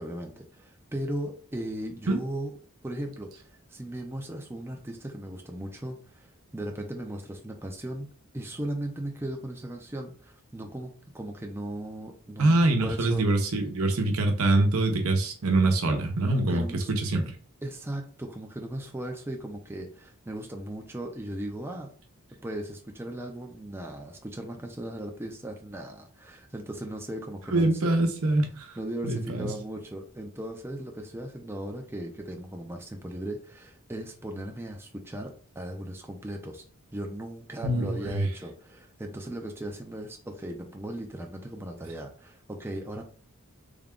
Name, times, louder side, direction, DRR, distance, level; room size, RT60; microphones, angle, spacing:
voice 1, 0.0-2.5 2.8-6.3 6.5-8.1 8.3-13.3 16.3-16.9 17.6-21.9 22.4-27.9 28.8-36.6 36.9-43.0, right 1 dB, 10° right, 2 dB, 0.4 m, -37 dB
voice 2, 12.4-16.6 17.0-17.2 27.5-28.7 29.0-29.5 37.6-38.2, right 2 dB, 80° right, 4 dB, 0.8 m, -24 dB
3.5 x 2.2 x 3.6 m, 0.43 s
head